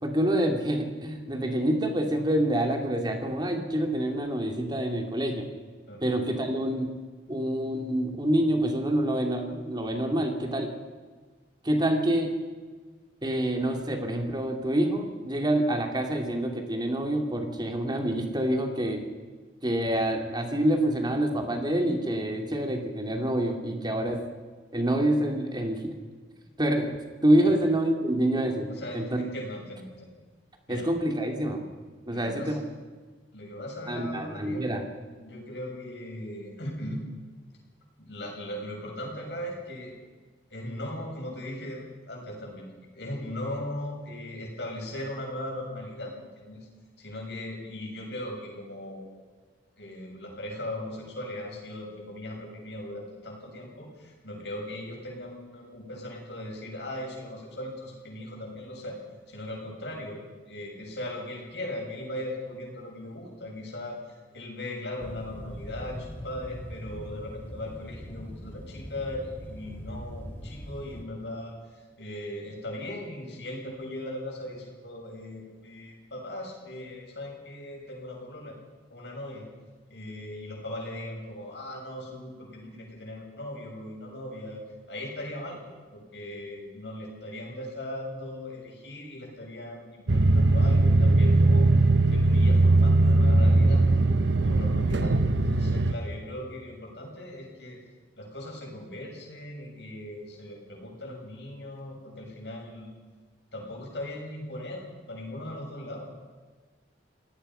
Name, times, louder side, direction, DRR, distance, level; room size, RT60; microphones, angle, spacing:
voice 1, 0.0-5.5 6.0-6.9 7.3-10.7 11.6-12.3 13.2-19.0 19.6-24.2 24.7-25.9 26.6-29.2 30.7-31.6 32.1-32.6 33.9-34.8, right 1 dB, 25° right, 3 dB, 2.6 m, -27 dB
voice 2, 28.7-30.1 30.7-30.9 32.1-32.6 33.3-34.7 35.2-37.0 38.0-39.9 40.5-42.7 42.9-46.7 47.0-49.1 49.8-59.0 59.3-78.6 78.9-79.5 79.9-84.6 84.9-91.7 92.0-93.8 94.3-97.8 98.2-102.9 103.5-106.1, left 1 dB, 70° left, -1 dB, 7.2 m, -38 dB
sound 1, 65.0-71.0, equal, 10° left, 2.3 m, -41 dB
sound 2, 90.1-95.9, right 2 dB, 80° right, 1.0 m, -20 dB
27.5 x 18.0 x 5.7 m, 1.4 s
head